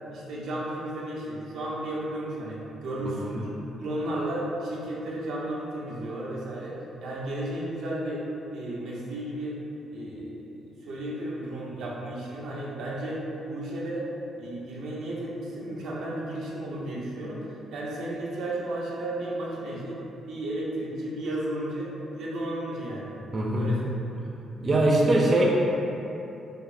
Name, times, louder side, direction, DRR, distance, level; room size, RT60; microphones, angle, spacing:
voice 1, 0.1-3.5 3.8-6.8 7.0-9.6 9.9-14.1 14.3-20.0 20.3-23.2 23.5-23.9, right 1 dB, 80° right, -5 dB, 0.6 m, -33 dB
voice 2, 3.0-3.4 23.3-23.7 24.6-25.4, right 1 dB, 35° right, -3 dB, 0.5 m, -22 dB
5.2 x 2.0 x 2.5 m, 2.9 s
cardioid pair, 90°, 0 cm